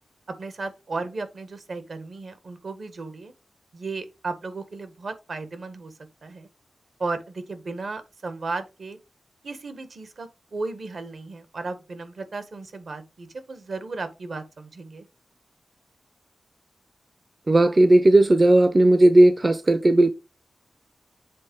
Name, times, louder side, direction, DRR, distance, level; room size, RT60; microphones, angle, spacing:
voice 1, 0.4-3.3 3.7-5.9 6.2-6.5 7.0-9.0 9.4-15.1, right 3 dB, 65° right, 1.4 m, -35 dB
voice 2, 17.5-20.1, right 1 dB, 35° right, 0.6 m, -16 dB
7.7 x 3.7 x 4.7 m
wide cardioid pair, 90°, 0 cm